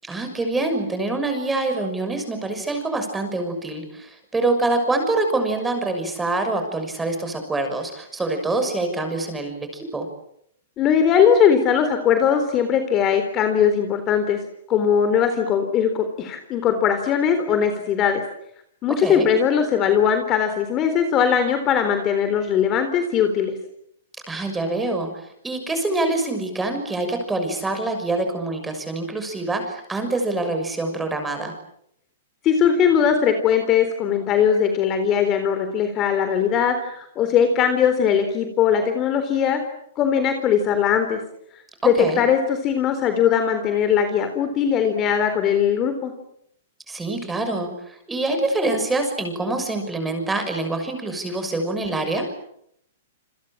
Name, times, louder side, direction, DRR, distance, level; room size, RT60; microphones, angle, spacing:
voice 1, 0.0-10.1 19.0-19.3 24.3-31.5 41.8-42.2 46.9-52.3, right 2 dB, 5° right, 6 dB, 6.4 m, -25 dB
voice 2, 10.8-14.4 14.7-18.2 18.8-23.5 32.4-39.6 40.0-41.2 41.8-46.1, left 8 dB, 25° left, 8 dB, 3.8 m, -20 dB
28.5 x 26.5 x 7.5 m, 0.73 s
hypercardioid pair, 155°, 0 cm